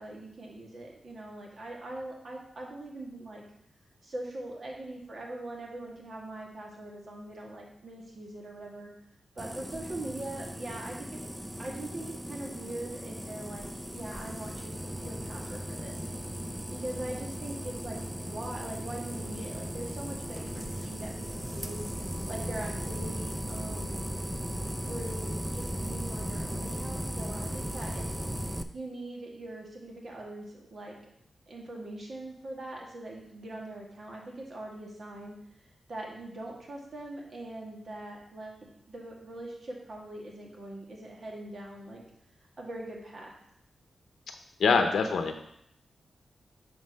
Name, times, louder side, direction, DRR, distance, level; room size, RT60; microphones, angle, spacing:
voice 1, 0.0-3.4 4.0-8.9 9.3-11.2 11.6-13.7 13.9-16.0 16.7-21.8 22.3-24.1 24.8-28.1 28.7-31.0 31.5-35.4 35.9-42.0 42.6-43.3, right 1 dB, 50° right, -1 dB, 1.7 m, -42 dB
sound 1, 9.4-28.6, equal, 5° right, 0.4 m, -37 dB
voice 2, 44.6-45.5, left 5 dB, 85° left, 6 dB, 0.6 m, -24 dB
6.3 x 4.3 x 5.3 m, 0.74 s
wide cardioid pair, 100°, 0 cm